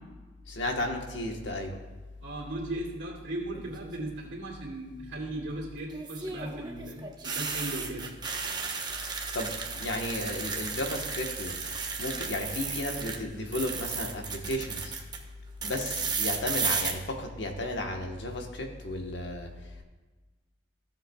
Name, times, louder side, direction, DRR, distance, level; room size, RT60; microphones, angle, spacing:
voice 1, 0.5-1.8 9.3-11.6 12.0-14.9 15.6-19.8, left 1 dB, 70° left, 2 dB, 1.2 m, -34 dB
voice 2, 2.2-8.1, right 1 dB, 70° right, -3 dB, 2.5 m, -37 dB
sound 1, 3.5-4.0 5.9-13.2 13.5-15.2 15.6-16.9, right 5 dB, 20° right, 0.9 m, -34 dB
15.5 x 7.3 x 2.3 m, 1.2 s
head